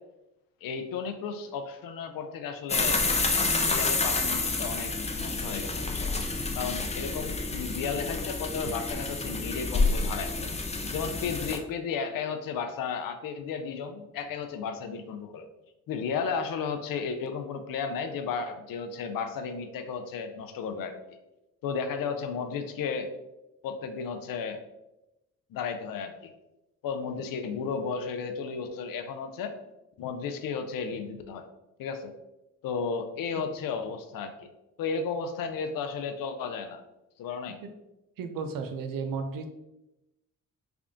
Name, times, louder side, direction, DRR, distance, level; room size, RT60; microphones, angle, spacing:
voice 1, 0.6-3.1 3.6-4.9 5.2-6.1 6.5-10.5 10.9-15.5 15.9-20.9 21.6-23.1 23.6-24.6 25.5-26.3 26.8-29.6 30.0-31.5 31.8-32.1 32.6-34.5 34.8-36.8 37.2-37.6, left 5 dB, 80° left, 7 dB, 0.5 m, -34 dB
sound 1, 2.7-11.6, left 3 dB, 20° left, 0.5 m, -29 dB
voice 2, 38.2-39.5, right 5 dB, 80° right, 7 dB, 0.6 m, -34 dB
3.4 x 2.4 x 3.6 m, 0.93 s
cardioid pair, 60°, 33 cm